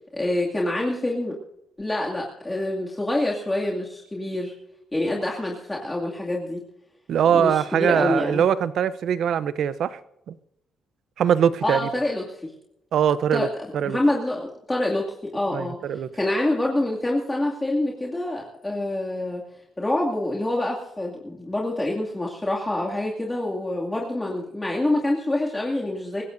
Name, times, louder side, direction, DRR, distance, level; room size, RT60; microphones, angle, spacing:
voice 1, 0.2-1.3 1.8-4.5 4.9-6.6 7.3-8.4 11.6-12.5 13.3-13.5 13.8-15.1 15.3-15.8 16.1-19.4 19.8-26.2, left 1 dB, 15° left, 2.4 m, -26 dB
voice 2, 7.1-10.0 10.3-10.4 11.2-11.8 12.9-13.5 13.7-14.0 15.5-16.1, right 8 dB, 70° right, 0.7 m, -22 dB
25.0 x 15.0 x 2.7 m
cardioid pair, 90°, 0 cm